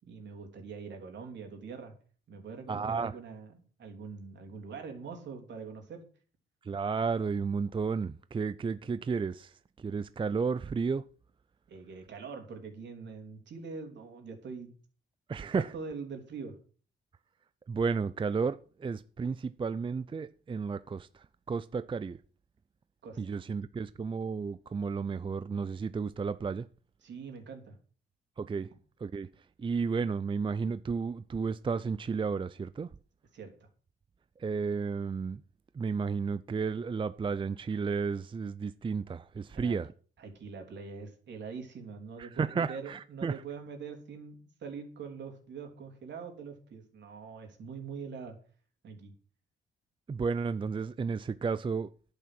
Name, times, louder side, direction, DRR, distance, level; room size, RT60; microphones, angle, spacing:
voice 1, 0.0-1.9 2.3-6.0 11.7-14.7 15.5-16.6 23.0-23.4 27.0-27.8 33.3-33.7 39.5-39.8 40.2-48.4 48.8-49.1, right 5 dB, 65° right, 3.6 m, -43 dB
voice 2, 2.7-3.1 6.6-11.0 15.3-15.7 17.7-22.2 23.2-26.7 28.4-28.7 29.0-32.9 34.4-35.4 35.7-39.9 42.2-43.4 50.1-51.9, right 5 dB, 25° right, 0.5 m, -33 dB
11.0 x 8.6 x 6.0 m
cardioid pair, 85°, 20 cm